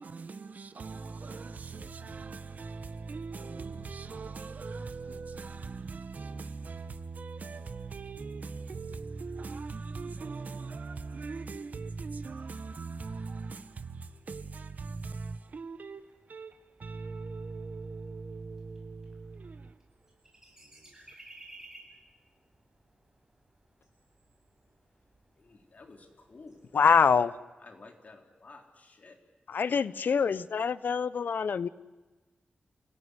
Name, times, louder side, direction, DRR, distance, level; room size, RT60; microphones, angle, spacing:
voice 1, 0.0-20.2 20.6-21.2, right 4 dB, 55° right, 1.4 m, -40 dB
sound 1, 12.2-27.3, right 2 dB, 15° right, 7.6 m, -59 dB
voice 2, 25.4-26.9 27.6-29.2, left 3 dB, 50° left, 3.9 m, -53 dB
voice 3, 26.7-27.3 29.5-31.7, left 6 dB, 80° left, 0.8 m, -25 dB
28.5 x 17.0 x 9.9 m
wide cardioid pair, 130°, 3 cm